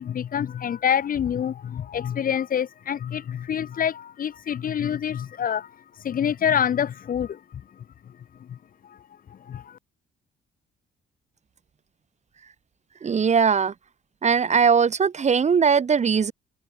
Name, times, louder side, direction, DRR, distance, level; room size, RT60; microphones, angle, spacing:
voice 1, 0.0-5.7 6.0-7.4 8.5-8.6 9.5-9.8, left 8 dB, 45° left, 0.6 m, -26 dB
voice 2, 13.0-13.7 14.2-16.3, right 6 dB, 35° right, 0.9 m, -20 dB
cardioid pair, 90°, 20 cm